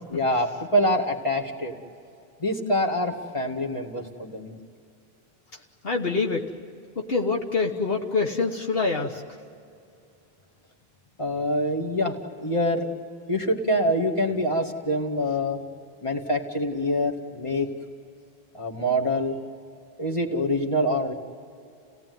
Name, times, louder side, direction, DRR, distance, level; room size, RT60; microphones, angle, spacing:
voice 1, 0.1-1.7 2.4-4.5 11.2-12.2 12.4-12.9 13.3-15.6 16.0-17.7 18.5-19.3 20.0-21.1, equal, 30° left, 2 dB, 2.3 m, -25 dB
voice 2, 5.8-6.5 7.0-9.2, left 4 dB, 65° left, 2 dB, 1.5 m, -25 dB
30.0 x 18.0 x 9.5 m, 2.6 s
omnidirectional pair, 1.0 m